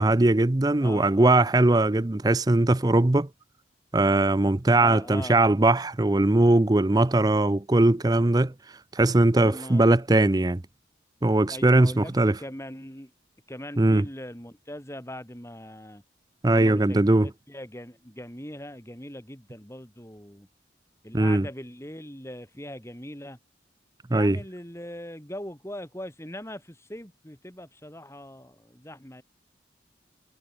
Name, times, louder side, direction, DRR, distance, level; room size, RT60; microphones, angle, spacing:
voice 1, 0.0-3.3 3.9-8.5 8.9-10.6 11.2-12.4 13.8-14.0 16.4-17.3 21.1-21.5 24.1-24.4, right 2 dB, 20° right, 0.6 m, -20 dB
voice 2, 0.8-1.5 4.7-5.4 9.4-9.9 11.5-13.1 13.5-16.0 16.5-20.5 21.0-23.4 24.1-29.2, left 1 dB, 15° left, 5.6 m, -40 dB
head